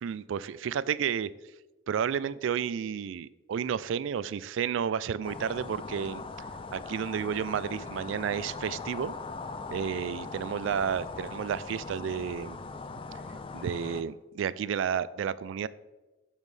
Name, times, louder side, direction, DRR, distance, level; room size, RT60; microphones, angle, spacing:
voice 1, 0.0-1.3 1.9-6.2 6.7-9.2 9.7-12.6 13.3-15.7, right 7 dB, 65° right, 18 dB, 0.3 m, -31 dB
sound 1, 5.2-14.0, left 4 dB, 25° left, 0.4 m, -40 dB
9.1 x 7.3 x 3.3 m, 1.1 s
head